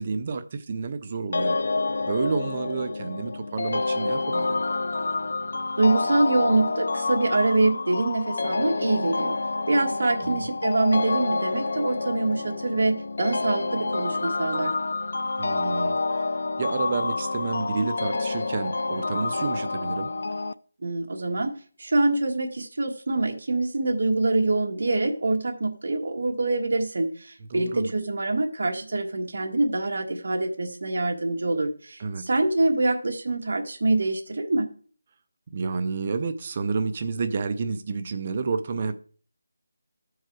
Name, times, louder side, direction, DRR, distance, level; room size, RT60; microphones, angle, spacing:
voice 1, 0.0-1.6 2.0-4.6 10.2-10.5 15.4-16.2 16.6-20.1 27.5-27.9 32.0-32.2 35.5-38.9, right 4 dB, 25° right, 0.4 m, -30 dB
sound 1, 1.3-20.5, left 3 dB, 50° left, 0.3 m, -28 dB
voice 2, 5.8-9.4 9.7-14.7 20.8-21.5 21.8-34.7, right 2 dB, 50° right, 1.4 m, -25 dB
13.5 x 4.7 x 4.6 m
figure-of-eight pair, 180°, 0 cm